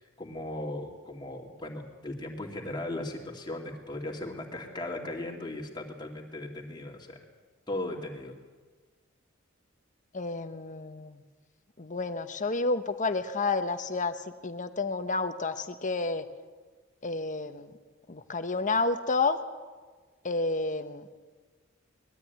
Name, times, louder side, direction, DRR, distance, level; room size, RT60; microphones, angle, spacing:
voice 1, 0.0-7.2 7.7-8.4, left 1 dB, 20° left, 0 dB, 2.6 m, -37 dB
voice 2, 10.1-11.2 11.8-14.1 14.4-16.2 17.0-17.7 18.1-19.4 20.2-21.0, left 3 dB, 40° left, 10 dB, 1.1 m, -30 dB
20.5 x 13.5 x 9.5 m, 1.4 s
head